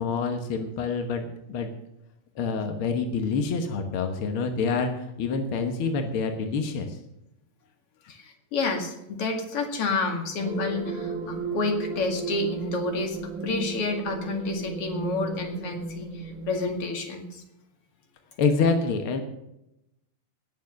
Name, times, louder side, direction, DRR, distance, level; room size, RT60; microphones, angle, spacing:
voice 1, 0.0-1.7 2.3-7.0 18.4-19.2, left 4 dB, 65° left, 5 dB, 1.3 m, -27 dB
voice 2, 8.1-17.4, left 3 dB, 45° left, 3 dB, 2.6 m, -29 dB
sound 1, 10.4-16.8, right 3 dB, 50° right, 5.9 m, -35 dB
19.5 x 7.1 x 6.5 m, 0.85 s
omnidirectional pair, 4.2 m